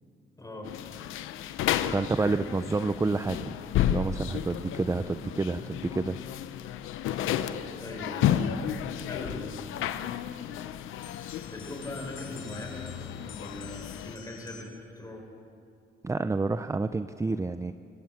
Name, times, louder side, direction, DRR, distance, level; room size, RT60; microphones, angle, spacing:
voice 1, 0.4-0.7 7.8-8.5 9.0-9.5 9.9-10.0 11.5-14.7 15.0-15.3, left 1 dB, 15° left, 1 dB, 5.3 m, -40 dB
sound 1, 0.6-14.2, left 10 dB, 90° left, 0.9 m, -32 dB
voice 2, 1.9-3.5 3.9-6.2 16.0-17.7, right 3 dB, 15° right, 11 dB, 0.6 m, -29 dB
sound 2, 11.0-14.9, left 8 dB, 75° left, 1.7 m, -49 dB
24.5 x 15.5 x 7.4 m, 2.7 s
cardioid pair, 90°, 20 cm